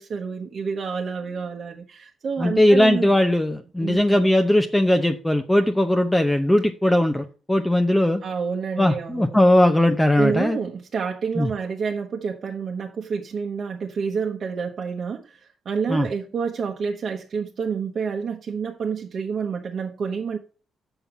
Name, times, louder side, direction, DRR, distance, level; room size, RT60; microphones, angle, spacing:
voice 1, 0.0-3.1 3.8-4.2 8.2-9.4 10.2-20.4, right 6 dB, 50° right, 1.0 m, -28 dB
voice 2, 2.4-8.2 8.8-10.6 11.4-11.5 15.9-16.1, left 1 dB, 10° left, 0.7 m, -19 dB
7.0 x 5.5 x 5.8 m
cardioid pair, 90°, 0 cm